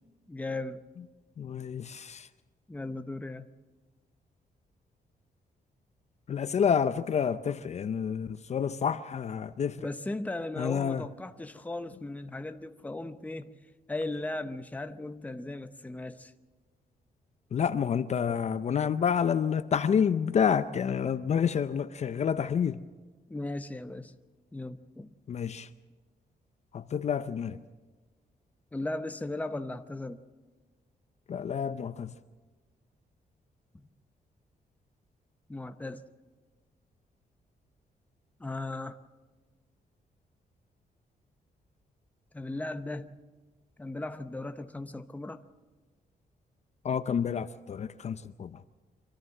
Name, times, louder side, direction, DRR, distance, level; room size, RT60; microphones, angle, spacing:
voice 1, 0.3-0.8 2.7-3.5 9.8-13.6 13.9-16.3 23.3-24.1 24.5-25.1 28.7-30.2 33.7-33.9 35.5-36.0 38.4-39.0 42.3-43.1 43.8-45.4, left 2 dB, 10° left, 9 dB, 0.7 m, -37 dB
voice 2, 1.4-2.3 6.3-9.9 10.6-11.0 17.5-22.8 25.3-25.7 26.7-27.6 31.3-32.1 46.8-48.6, left 7 dB, 45° left, 12 dB, 0.5 m, -29 dB
24.5 x 14.5 x 7.7 m, 1.3 s
wide cardioid pair, 150°, 16 cm